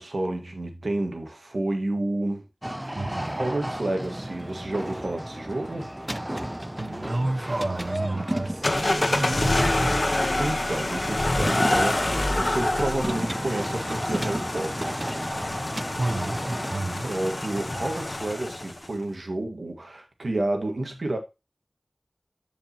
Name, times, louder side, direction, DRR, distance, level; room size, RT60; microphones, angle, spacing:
voice 1, 0.0-2.9 3.3-5.9 10.4-14.9 17.0-21.2, right 2 dB, 80° right, 1.7 m, -30 dB
sound 1, 2.6-16.8, right 1 dB, 15° right, 0.4 m, -34 dB
voice 2, 2.9-3.4 6.8-10.2 16.0-17.2, right 2 dB, 60° right, 0.9 m, -30 dB
sound 2, 8.6-18.9, left 1 dB, 45° left, 1.0 m, -27 dB
10.0 x 5.3 x 2.9 m
wide cardioid pair, 55°, 0 cm